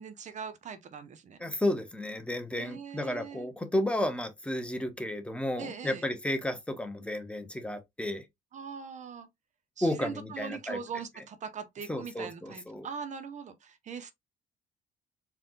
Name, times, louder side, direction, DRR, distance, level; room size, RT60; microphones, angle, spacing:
voice 1, 0.0-1.4 2.5-3.5 5.6-6.1 8.5-9.3 9.8-14.1, right 6 dB, 45° right, 0.7 m, -41 dB
voice 2, 1.4-8.2 9.8-10.8 11.9-12.9, left 1 dB, 5° left, 0.9 m, -32 dB
4.5 x 2.4 x 3.8 m
cardioid pair, 110°, 17 cm